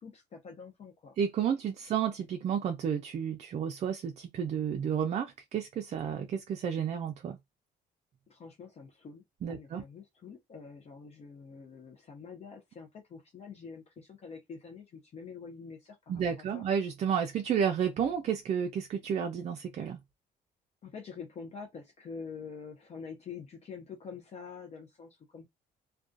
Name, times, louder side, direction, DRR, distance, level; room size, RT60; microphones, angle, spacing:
voice 1, 0.0-1.2 8.3-16.2 16.5-16.7 20.8-25.5, left 5 dB, 40° left, 0.6 m, -46 dB
voice 2, 1.2-7.4 9.4-9.8 16.1-20.0, right 8 dB, 40° right, 0.4 m, -31 dB
2.3 x 2.2 x 2.5 m
cardioid pair, 110°, 17 cm